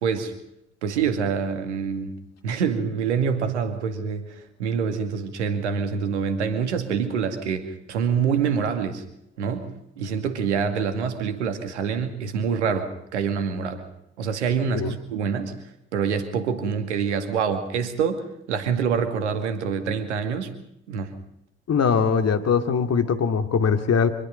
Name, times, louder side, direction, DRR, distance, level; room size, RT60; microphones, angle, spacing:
voice 1, 0.0-0.3 0.8-2.2 2.4-9.0 9.4-13.8 14.2-15.5 15.9-20.5 20.9-21.2, right 6 dB, 85° right, 8 dB, 2.3 m, -26 dB
voice 2, 21.7-24.1, left 6 dB, 45° left, 8 dB, 2.7 m, -21 dB
25.5 x 20.5 x 5.4 m, 0.82 s
hypercardioid pair, 50°, 34 cm